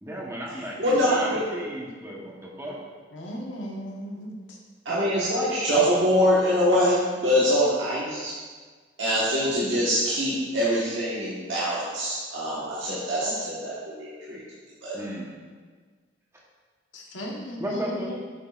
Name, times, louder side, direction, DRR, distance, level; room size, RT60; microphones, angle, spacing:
voice 1, 0.0-2.8 14.9-15.3 17.6-18.2, equal, 15° right, -3 dB, 1.1 m, -34 dB
voice 2, 0.8-1.4 4.8-8.3 9.0-14.4 14.8-14.9, equal, 85° right, -8 dB, 1.4 m, -24 dB
voice 3, 3.1-4.6 13.2-13.3 16.9-18.2, equal, 80° left, -1 dB, 1.2 m, -36 dB
8.8 x 6.4 x 2.5 m, 1.5 s
head